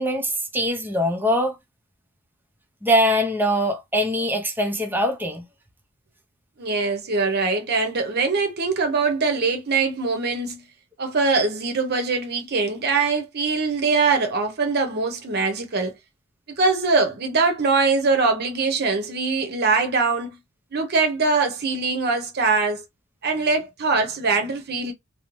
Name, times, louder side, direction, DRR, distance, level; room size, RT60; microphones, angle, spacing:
voice 1, 0.0-1.6 2.8-5.4, equal, 10° right, 0.6 m, -22 dB
voice 2, 6.6-10.6 11.0-15.9 16.5-20.4 20.7-22.8 23.2-24.9, right 4 dB, 50° right, 0.7 m, -22 dB
2.6 x 2.0 x 3.0 m
head